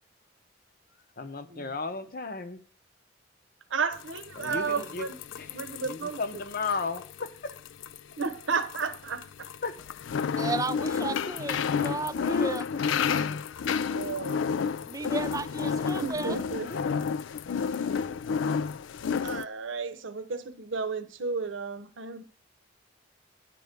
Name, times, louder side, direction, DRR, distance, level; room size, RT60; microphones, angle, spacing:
voice 1, 1.2-2.6 4.3-7.6 9.6-9.8 11.1-11.3 12.1-13.4 16.1-16.9, left 3 dB, 50° left, 0.9 m, -35 dB
voice 2, 3.7-5.1 5.5-6.2 8.2-9.5 13.9-14.6 16.0-16.7 19.2-22.2, right 5 dB, 75° right, 0.8 m, -33 dB
sound 1, 3.9-19.4, left 6 dB, 75° left, 0.4 m, -31 dB
voice 3, 4.4-4.9 10.4-12.6 14.8-16.4, right 3 dB, 20° right, 0.4 m, -34 dB
10.5 x 4.7 x 6.7 m
head